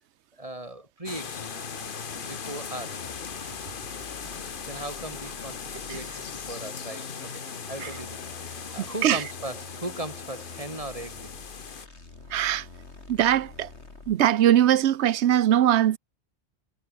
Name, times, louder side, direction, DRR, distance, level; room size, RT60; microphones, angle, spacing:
voice 1, 0.4-1.6 2.2-3.1 4.7-11.3, right 1 dB, 30° right, 3.8 m, -38 dB
sound 1, 1.1-11.9, left 6 dB, 55° left, 1.2 m, -39 dB
sound 2, 1.4-14.3, left 3 dB, 90° left, 3.0 m, -46 dB
voice 2, 8.8-9.2 12.3-12.7 13.1-13.7 14.1-16.0, right 11 dB, 90° right, 1.0 m, -21 dB
omnidirectional pair, 1.1 m